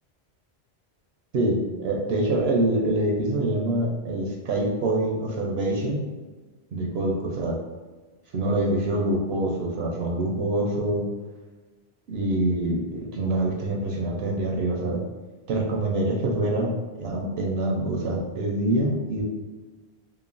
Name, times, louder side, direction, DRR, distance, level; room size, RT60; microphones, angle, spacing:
voice 1, 1.3-6.0 6.7-7.6 8.3-11.1 12.1-15.0 15.5-19.2, right 1 dB, 75° right, -1 dB, 0.8 m, -25 dB
3.0 x 2.1 x 2.4 m, 1.3 s
omnidirectional pair, 1.1 m